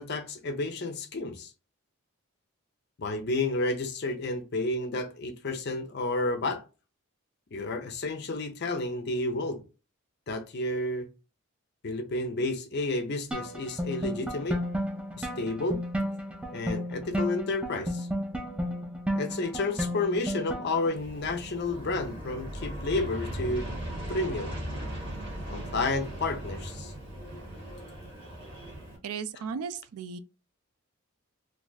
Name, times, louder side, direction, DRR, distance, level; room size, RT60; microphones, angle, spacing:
voice 1, 0.0-1.5 3.0-6.6 7.5-9.6 10.3-11.1 11.8-14.6 15.2-15.8 16.5-18.1 19.1-23.7 24.1-24.6 25.5-26.9, left 2 dB, 50° left, 0.5 m, -31 dB
sound 1, 13.3-21.0, equal, 5° right, 0.4 m, -33 dB
Aircraft, 20.9-29.0, right 1 dB, 25° right, 1.2 m, -38 dB
voice 2, 29.0-30.2, right 6 dB, 85° right, 0.4 m, -35 dB
2.6 x 2.4 x 3.9 m
head